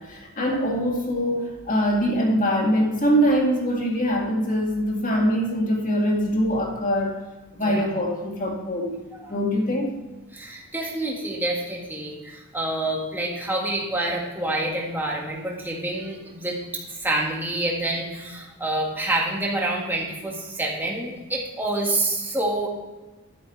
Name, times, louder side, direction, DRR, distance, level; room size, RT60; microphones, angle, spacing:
voice 1, 0.0-7.2 7.5-8.9 9.3-9.9, equal, 35° left, 0 dB, 2.0 m, -23 dB
voice 2, 10.3-22.7, right 1 dB, 10° right, -2 dB, 1.8 m, -27 dB
11.0 x 9.0 x 3.3 m, 1.2 s
head